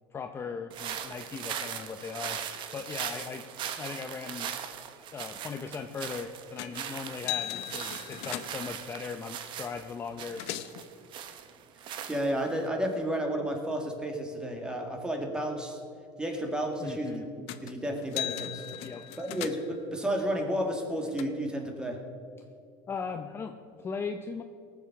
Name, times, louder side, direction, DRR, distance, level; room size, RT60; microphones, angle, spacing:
voice 1, 0.1-2.4 2.7-3.4 3.8-4.5 5.1-10.4 16.8-17.3 18.8-19.0 22.9-24.4, left 5 dB, 20° left, 6 dB, 0.6 m, -38 dB
sound 1, 0.7-12.6, right 9 dB, 45° right, 1.1 m, -40 dB
sound 2, 6.6-6.8 7.1-8.8 9.7-9.8 10.1-10.8 17.5-17.7 18.0-19.8 20.6-21.2, left 13 dB, 60° left, 0.8 m, -38 dB
voice 2, 12.1-15.8 16.2-17.2 17.6-18.7 19.2-22.0, equal, 5° right, 3 dB, 1.9 m, -32 dB
18.5 x 7.3 x 5.9 m, 2.4 s
supercardioid pair, 135°, 11 cm